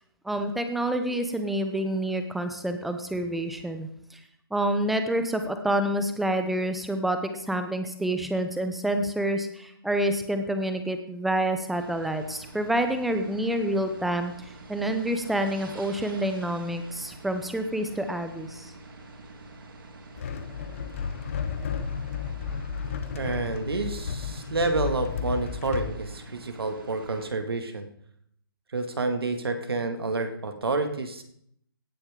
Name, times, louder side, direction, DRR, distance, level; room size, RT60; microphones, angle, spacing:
voice 1, 0.2-4.2 4.5-14.3 14.7-18.7, right 1 dB, ahead, 7 dB, 0.5 m, -28 dB
sound 1, 11.7-27.3, right 2 dB, 65° right, 2.6 m, -46 dB
sound 2, 20.2-26.0, left 6 dB, 35° left, 0.9 m, -33 dB
voice 2, 23.1-27.9 28.7-31.2, right 3 dB, 85° right, 5 dB, 2.0 m, -29 dB
17.0 x 8.7 x 3.7 m, 0.70 s
hypercardioid pair, 165°, 12 cm